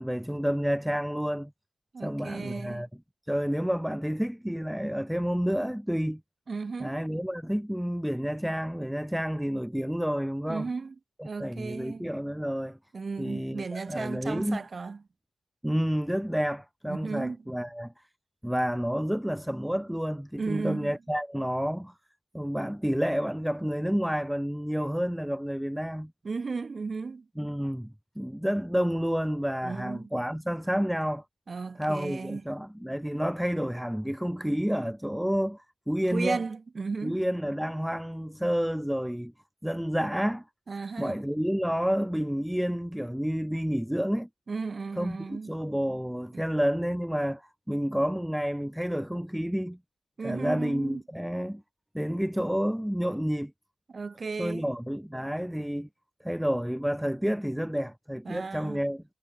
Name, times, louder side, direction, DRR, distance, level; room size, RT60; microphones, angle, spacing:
voice 1, 0.0-1.5 2.0-2.9 3.3-6.2 6.8-10.7 11.2-12.8 13.2-14.6 15.6-17.9 18.4-21.9 22.3-26.1 27.4-31.2 31.8-36.4 37.0-39.3 39.6-40.4 41.0-44.3 45.0-49.8 50.2-51.6 51.9-53.5 54.4-55.9 56.2-59.0, equal, 5° right, 2.4 m, -29 dB
voice 2, 1.9-2.9 6.5-7.0 10.5-11.0 11.2-12.1 12.9-15.0 16.9-17.4 20.4-20.9 26.2-27.3 29.6-30.1 31.5-32.4 36.1-37.2 40.7-41.2 44.5-45.6 46.3-46.4 50.2-51.0 53.9-54.7 58.2-58.8, right 4 dB, 50° right, 3.7 m, -35 dB
supercardioid pair, 45°, 0 cm